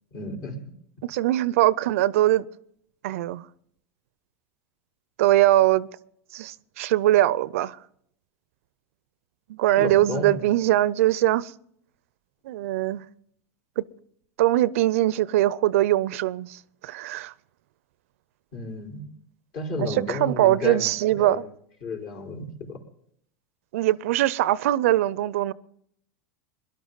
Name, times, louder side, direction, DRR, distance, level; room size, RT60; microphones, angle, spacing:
voice 1, 0.1-0.5 9.8-10.4 18.5-19.1 19.5-21.4 21.8-22.5, left 2 dB, 55° left, 4.5 m, -32 dB
voice 2, 1.0-2.5 3.0-3.5 5.2-5.9 6.3-7.8 9.5-11.5 12.4-13.1 13.8-13.9 14.4-17.3 19.8-21.5 23.7-25.5, right 14 dB, 70° right, 0.5 m, -22 dB
22.0 x 12.0 x 4.0 m
hypercardioid pair, 90°, 8 cm